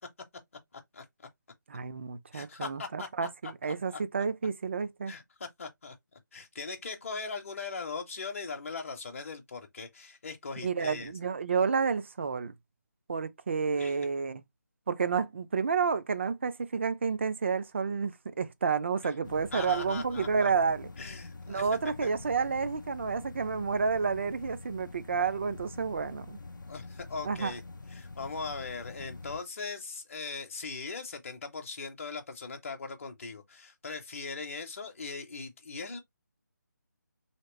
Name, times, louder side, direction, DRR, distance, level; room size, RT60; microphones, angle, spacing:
voice 1, 0.7-1.1 2.3-3.3 3.6-4.0 5.1-6.0 6.3-11.1 13.8-14.0 19.5-20.5 21.0-21.7 22.0-22.1 26.7-27.6 27.9-36.0, left 4 dB, 45° left, 0.7 m, -40 dB
voice 2, 1.7-5.1 10.6-12.5 13.1-14.4 14.9-20.9 21.5-26.4 27.2-27.5, right 5 dB, 40° right, 0.4 m, -30 dB
sound 1, 19.2-29.4, left 3 dB, 85° left, 0.4 m, -46 dB
2.9 x 2.9 x 2.9 m
figure-of-eight pair, 155°, 10 cm